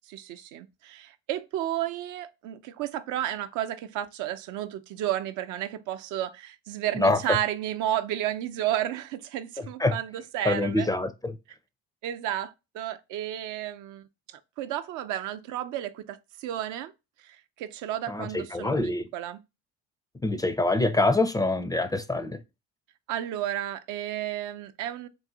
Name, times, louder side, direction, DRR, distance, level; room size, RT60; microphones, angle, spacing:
voice 1, 0.1-10.9 12.0-14.1 14.6-16.9 17.2-19.4 23.1-25.1, right 12 dB, 70° right, 0.6 m, -32 dB
voice 2, 7.0-7.4 9.8-9.9 10.4-11.3 18.1-19.1 20.2-22.4, left 2 dB, 10° left, 0.5 m, -25 dB
3.9 x 2.6 x 3.7 m
supercardioid pair, 70°, 32 cm